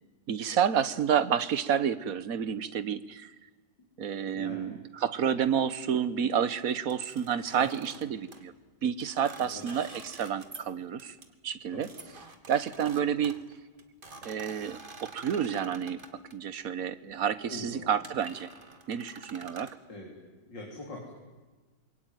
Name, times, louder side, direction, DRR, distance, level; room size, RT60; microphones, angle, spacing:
voice 1, 0.3-3.3 4.0-8.5 8.8-11.1 11.4-11.9 12.5-13.4 14.2-16.0 16.3-18.5 18.9-19.8, right 8 dB, 55° right, 14 dB, 1.4 m, -29 dB
voice 2, 4.3-4.7 7.6-7.7 9.4-9.7 11.7-11.9 17.5-17.9 19.9-20.1 20.4-21.1, left 2 dB, 75° left, -1 dB, 4.6 m, -42 dB
sound 1, 6.9-8.4 9.0-10.7 11.0-11.3 11.8-16.3 17.1-17.3 17.7-17.8 18.0-19.8, right 3 dB, 30° right, 2.1 m, -48 dB
26.5 x 23.0 x 9.2 m, 1.3 s
omnidirectional pair, 2.0 m